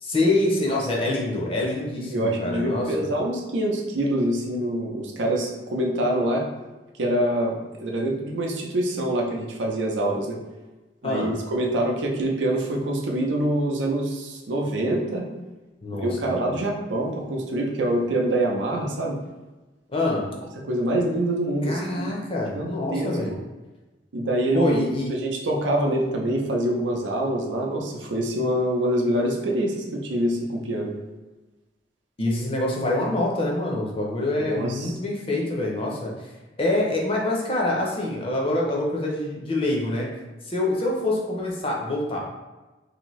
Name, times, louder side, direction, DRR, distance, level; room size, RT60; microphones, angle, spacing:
voice 1, 0.0-3.0 11.0-11.3 15.8-16.5 19.9-20.3 21.6-23.3 24.5-25.1 32.2-36.1 36.6-40.1 40.5-42.2, left 2 dB, 30° left, -2 dB, 0.6 m, -25 dB
voice 2, 2.0-6.5 7.0-10.4 11.0-15.3 15.9-19.2 20.7-23.4 24.1-24.7 25.1-30.9 34.4-34.9, right 1 dB, 85° right, 0 dB, 0.6 m, -25 dB
2.8 x 2.6 x 3.1 m, 1.2 s
head